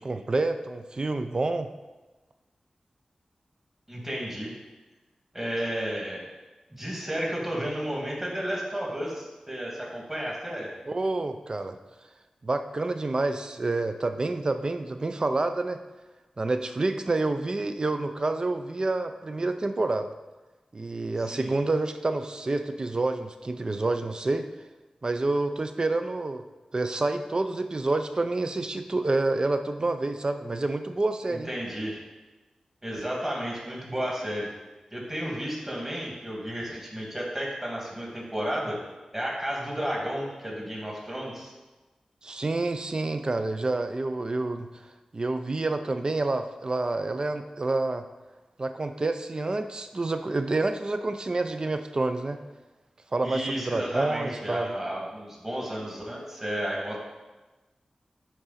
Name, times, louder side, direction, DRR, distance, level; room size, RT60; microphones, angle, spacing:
voice 1, 0.0-1.7 10.8-11.8 12.4-15.8 16.4-20.1 20.7-24.5 25.0-26.4 26.7-31.5 42.2-44.7 45.1-48.0 48.6-52.4 53.1-54.8, right 2 dB, 40° right, 8 dB, 0.5 m, -28 dB
voice 2, 3.9-4.5 5.3-6.2 6.7-10.7 21.3-21.5 31.3-32.0 32.8-34.5 34.9-38.8 39.1-41.5 53.2-57.0, equal, 20° right, -3 dB, 2.2 m, -32 dB
10.5 x 3.9 x 4.2 m, 1.2 s
wide cardioid pair, 75°, 2 cm